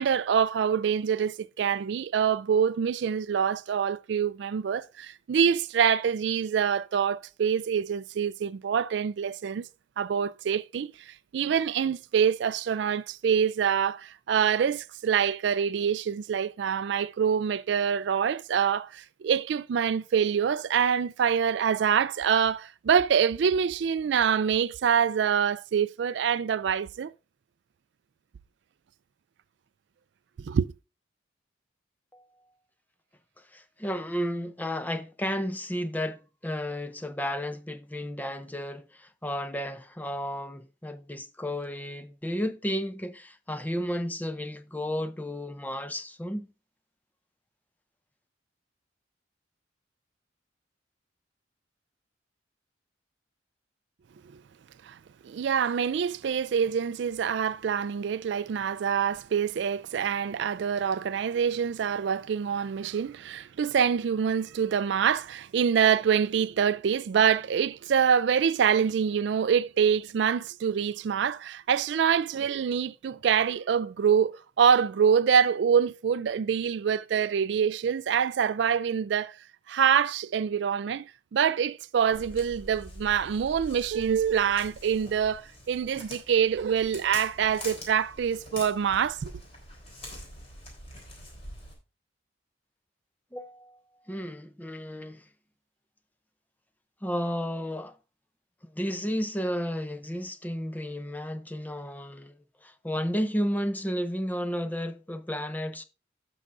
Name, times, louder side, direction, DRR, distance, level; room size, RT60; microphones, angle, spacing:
voice 1, 0.0-9.7 10.0-27.1 30.4-30.7 54.8-55.0 55.2-79.4 79.7-89.3, right 7 dB, 65° right, 0.3 m, -25 dB
voice 2, 33.4-46.5 93.3-93.8 94.1-95.2 97.0-98.0 98.6-105.8, equal, 10° left, 0.6 m, -33 dB
Walk footsteps, 82.1-91.7, left 1 dB, 30° left, 3.6 m, -45 dB
16.5 x 6.4 x 2.5 m
head